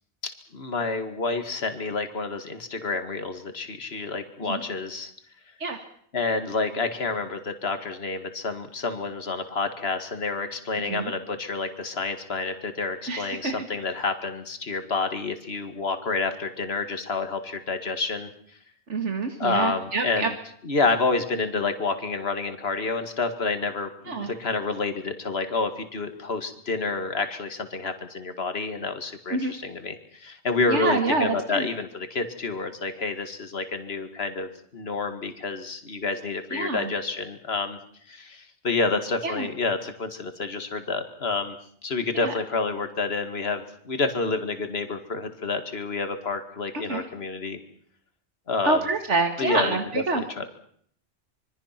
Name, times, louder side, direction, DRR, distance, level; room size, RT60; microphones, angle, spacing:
voice 1, 0.2-5.1 6.1-18.3 19.4-20.3 20.6-37.8 38.1-41.6 41.8-47.6 48.5-48.8 49.4-50.5, left 3 dB, 60° left, 8 dB, 2.3 m, -29 dB
voice 2, 13.1-13.6 18.9-20.3 24.1-24.3 29.3-29.5 30.7-31.7 36.5-36.9 39.2-39.5 42.1-42.3 46.7-47.0 48.6-50.2, right 3 dB, 85° right, 5 dB, 2.4 m, -26 dB
26.0 x 23.5 x 6.0 m, 0.64 s
omnidirectional pair, 1.2 m